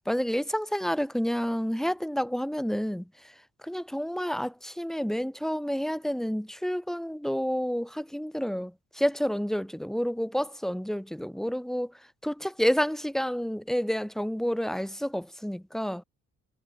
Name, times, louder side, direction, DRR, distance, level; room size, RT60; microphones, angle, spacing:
voice 1, 0.1-3.1 3.6-11.9 12.2-16.0, equal, ahead, 2.7 m, -29 dB
cardioid pair, 90°, 30 cm